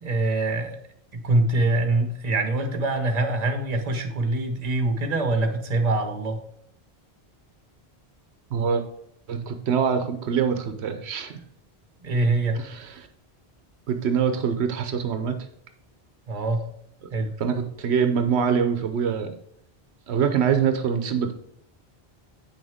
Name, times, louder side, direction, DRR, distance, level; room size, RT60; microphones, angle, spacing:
voice 1, 0.0-0.8 1.1-6.4 12.0-12.6 16.3-16.6 17.1-17.3, right 2 dB, 40° right, 5 dB, 1.0 m, -24 dB
voice 2, 8.5-8.8 9.3-11.4 12.5-13.1 13.9-15.4 17.4-19.3 20.1-21.3, right 7 dB, 85° right, 8 dB, 1.0 m, -24 dB
8.4 x 6.2 x 3.5 m, 0.72 s
omnidirectional pair, 1.1 m